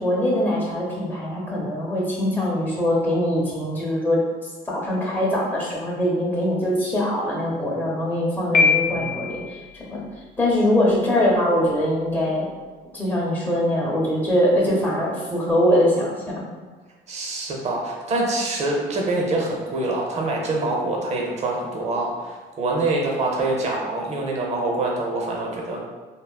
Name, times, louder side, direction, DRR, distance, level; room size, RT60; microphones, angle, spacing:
voice 1, 0.0-4.2 4.7-9.6 9.9-10.0 10.4-12.5 12.9-16.1, left 1 dB, 10° left, -6 dB, 0.7 m, -22 dB
Piano, 8.5-9.5, left 5 dB, 55° left, 0.6 m, -20 dB
voice 2, 8.9-9.2 17.1-25.9, right 2 dB, 40° right, -1 dB, 0.6 m, -25 dB
3.6 x 2.0 x 2.2 m, 1.3 s
cardioid pair, 110°, 17 cm